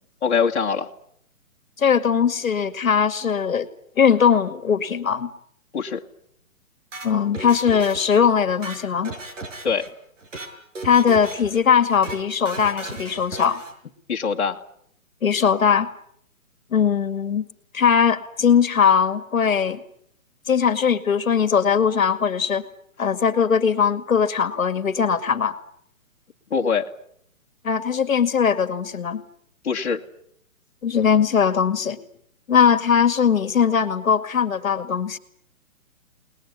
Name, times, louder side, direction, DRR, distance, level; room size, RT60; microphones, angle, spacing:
voice 1, 0.2-0.9 5.7-6.0 9.6-9.9 14.1-14.6 26.5-26.9 29.6-30.0, left 6 dB, 50° left, 0 dB, 2.1 m, -23 dB
voice 2, 1.8-3.7 4.0-5.3 7.0-9.2 10.8-13.6 15.2-15.9 16.7-17.4 17.7-19.8 20.5-22.6 23.0-25.5 27.6-29.2 30.8-32.0 32.5-35.2, left 7 dB, 65° left, 12 dB, 2.2 m, -20 dB
sound 1, 6.9-8.2 8.5-9.9 10.2-10.5 10.8-11.6 11.9-12.2 12.5-13.7, right 2 dB, 60° right, 6.4 m, -36 dB
28.5 x 20.5 x 9.7 m, 0.71 s
hypercardioid pair, 175°, 43 cm